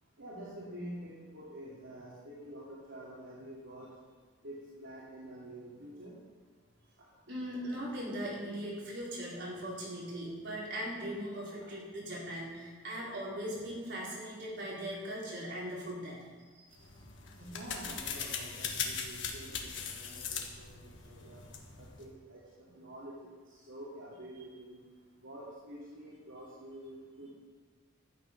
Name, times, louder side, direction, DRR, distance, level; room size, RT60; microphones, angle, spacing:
voice 1, 0.2-3.9 4.4-6.2 11.6-11.7 17.4-21.4 21.8-22.4 22.7-24.8 25.2-27.3, right 1 dB, 75° right, -7 dB, 2.6 m, -47 dB
voice 2, 7.3-16.2 16.5-16.8 20.3-20.4, equal, 60° right, -6 dB, 4.4 m, -39 dB
sound 1, 16.7-22.1, left 6 dB, 65° left, 1.5 m, -40 dB
12.5 x 9.0 x 5.4 m, 1.5 s
head